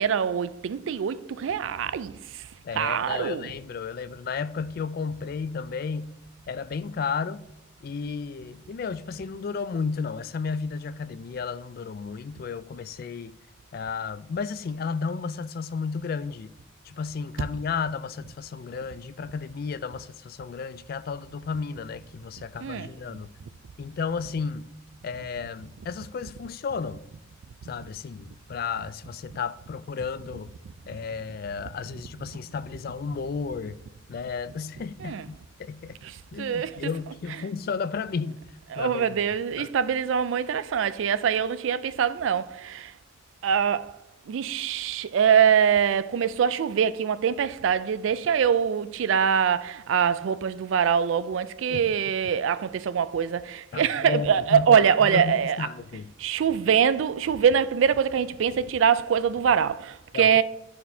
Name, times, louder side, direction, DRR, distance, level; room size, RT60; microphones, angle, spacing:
voice 1, 0.0-2.5 2.8-3.5 22.6-22.9 35.0-35.3 36.0-36.1 36.4-36.8 38.7-42.9 43.4-44.0 44.3-55.7 56.2-60.4, right 7 dB, 70° right, 0.3 m, -24 dB
voice 2, 2.6-6.2 6.5-7.4 7.8-13.3 13.7-16.5 16.8-23.3 23.8-24.7 25.0-27.0 27.7-30.5 30.9-33.8 34.1-36.0 36.3-38.4 38.8-39.0 39.6-39.7 51.7-51.9 53.7-56.1 60.1-60.3, left 5 dB, 50° left, 0.3 m, -33 dB
13.0 x 4.3 x 2.7 m
head